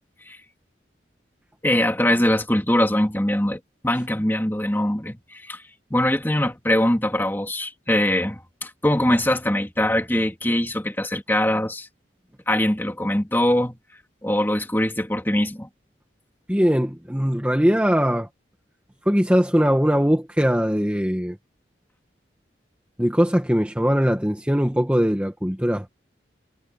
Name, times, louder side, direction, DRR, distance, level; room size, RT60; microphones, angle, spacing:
voice 1, 1.6-5.6 5.9-11.9 12.5-13.8 14.2-15.7, left 1 dB, 10° left, 2.5 m, -22 dB
voice 2, 16.5-18.3 19.0-21.4 23.0-25.9, equal, 5° right, 1.4 m, -20 dB
head